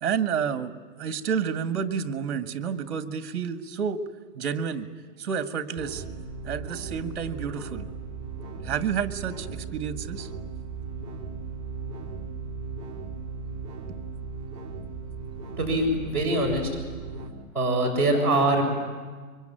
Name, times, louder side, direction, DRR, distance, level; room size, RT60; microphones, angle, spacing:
voice 1, 0.0-4.0 4.3-4.9 5.2-6.0 6.4-7.9 8.6-10.3, right 7 dB, 45° right, 9 dB, 1.7 m, -30 dB
sound 1, 5.8-17.3, right 5 dB, 10° right, 3.1 m, -37 dB
voice 2, 15.6-16.7 17.5-18.6, right 2 dB, 5° left, -6 dB, 6.6 m, -23 dB
25.0 x 24.0 x 9.1 m, 1.5 s
hypercardioid pair, 175°, 44 cm